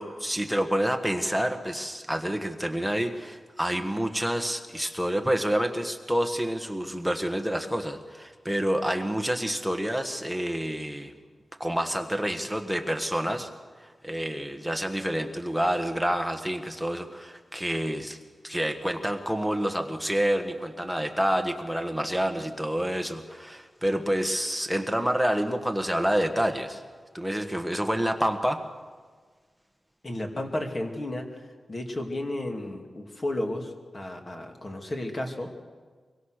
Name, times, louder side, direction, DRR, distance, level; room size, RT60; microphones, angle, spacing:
voice 1, 0.0-11.1 11.6-13.5 13.8-18.2 18.4-26.8 27.1-28.6, equal, ahead, 5 dB, 1.4 m, -28 dB
voice 2, 30.0-35.5, left 1 dB, 30° left, 3 dB, 2.6 m, -33 dB
24.0 x 23.5 x 6.6 m, 1.5 s
wide cardioid pair, 160°, 0 cm